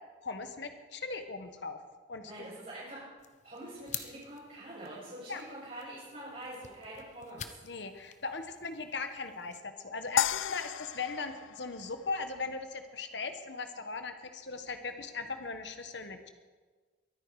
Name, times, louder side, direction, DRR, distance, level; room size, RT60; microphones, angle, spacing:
voice 1, 0.2-1.8 2.1-2.6 5.3-5.4 7.6-16.3, left 4 dB, 65° left, 8 dB, 1.2 m, -39 dB
voice 2, 2.2-3.0 3.4-7.4, right 1 dB, 45° right, -11 dB, 5.8 m, -45 dB
sound 1, 3.2-9.6, left 9 dB, 40° left, 0.7 m, -48 dB
sound 2, 10.2-12.5, left 10 dB, 85° left, 0.3 m, -33 dB
23.0 x 9.2 x 4.8 m, 1.4 s
head